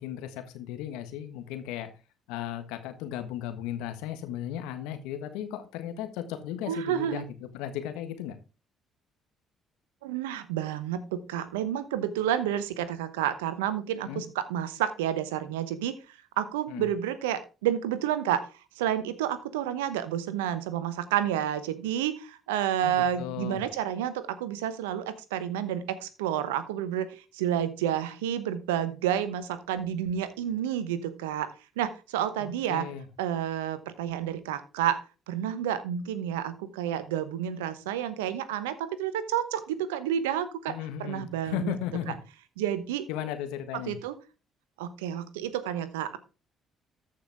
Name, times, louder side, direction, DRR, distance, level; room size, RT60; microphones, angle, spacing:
voice 1, 0.0-1.9 2.3-8.4 14.0-14.2 16.7-16.9 22.8-23.6 32.4-33.0 40.7-42.2 43.1-44.0, left 10 dB, 75° left, 8 dB, 1.4 m, -36 dB
voice 2, 6.7-7.2 10.0-18.5 18.8-32.9 33.2-35.0 35.3-41.7 42.6-43.1 43.9-44.2 44.8-46.2, right 10 dB, 85° right, 14 dB, 0.9 m, -30 dB
13.5 x 5.7 x 3.6 m, 0.31 s
hypercardioid pair, 50°, 0 cm